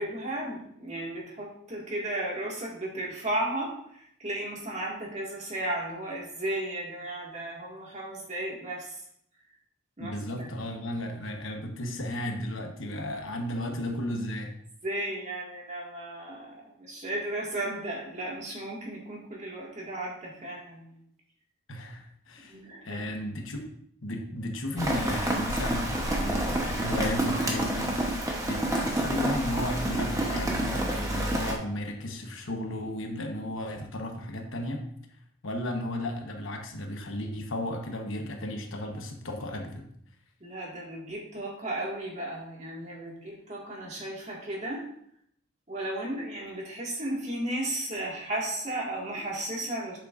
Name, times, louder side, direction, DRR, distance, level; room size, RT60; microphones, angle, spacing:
voice 1, 0.0-9.0 10.0-10.5 11.3-11.4 14.8-21.0 22.4-23.0 40.4-44.9 45.7-50.0, right 1 dB, 35° right, -3 dB, 1.9 m, -34 dB
voice 2, 10.0-14.5 21.7-22.6 22.8-23.6 24.0-28.0 28.5-34.8 35.4-39.9, left 1 dB, 70° left, 3 dB, 1.1 m, -34 dB
Rain, 24.8-31.5, right 1 dB, 15° right, 0.9 m, -28 dB
8.4 x 6.7 x 2.5 m, 0.69 s
head